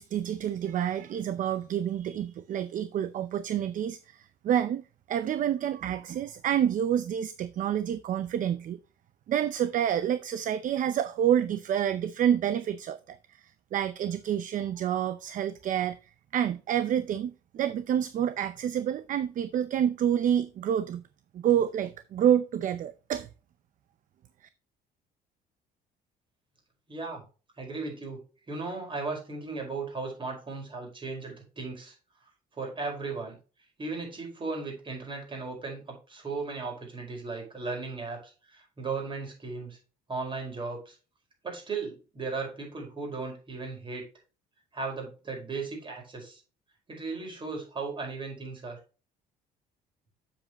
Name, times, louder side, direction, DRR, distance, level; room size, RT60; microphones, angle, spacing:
voice 1, 0.0-4.8 5.1-8.8 9.3-16.0 16.3-21.0 21.3-23.3, right 9 dB, 50° right, 0.6 m, -28 dB
voice 2, 26.9-27.2 27.6-31.9 32.6-33.4 33.8-39.8 40.1-41.0 41.4-44.1 44.7-46.4 46.9-48.8, right 4 dB, 30° right, 4.9 m, -36 dB
7.5 x 7.5 x 3.0 m
cardioid pair, 110°, 17 cm